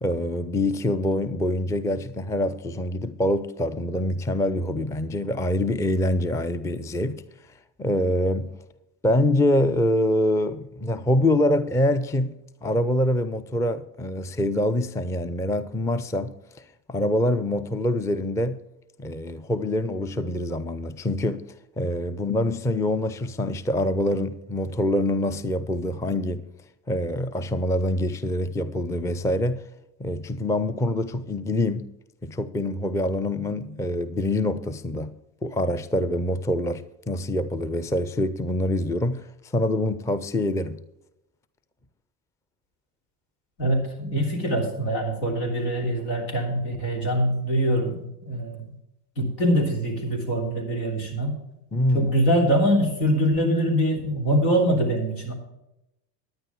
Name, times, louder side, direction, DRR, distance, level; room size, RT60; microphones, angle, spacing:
voice 1, 0.0-7.2 7.8-8.5 9.0-16.6 16.9-18.6 19.0-26.5 26.9-29.6 30.0-31.9 32.2-35.1 35.4-40.8 51.7-52.1, left 1 dB, 5° left, 0.5 m, -25 dB
voice 2, 43.6-48.7 49.2-51.4 51.9-55.3, equal, 80° left, 3.4 m, -24 dB
11.0 x 9.6 x 4.6 m
hypercardioid pair, 75°, 48 cm